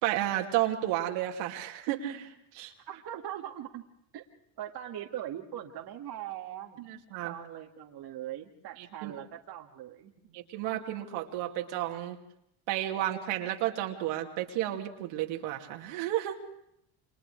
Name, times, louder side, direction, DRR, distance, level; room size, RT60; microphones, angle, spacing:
voice 1, 0.0-2.7 6.8-7.3 8.8-9.1 10.3-12.2 12.7-16.4, right 13 dB, 80° right, 2 dB, 2.6 m, -32 dB
voice 2, 2.6-3.9 4.1-4.2 4.6-6.8 7.2-10.4, right 11 dB, 55° right, 1 dB, 2.0 m, -41 dB
30.0 x 26.5 x 3.3 m, 0.75 s
supercardioid pair, 105°, 44 cm